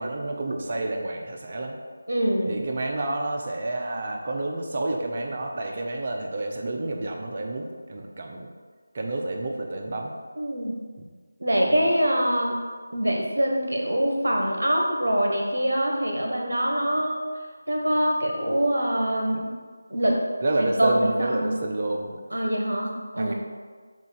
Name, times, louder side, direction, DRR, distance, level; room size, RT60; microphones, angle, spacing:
voice 1, 0.0-1.8 2.4-8.5 8.9-10.1 11.6-11.9 20.4-22.1 23.2-23.3, right 2 dB, 40° right, 1 dB, 0.8 m, -29 dB
voice 2, 2.1-2.6 10.4-10.7 11.4-12.5 12.9-17.2 17.7-19.5 19.9-20.2 20.6-21.6 22.3-23.3, equal, 75° right, 0 dB, 1.2 m, -24 dB
7.2 x 2.7 x 5.8 m, 1.5 s
figure-of-eight pair, 165°, 0 cm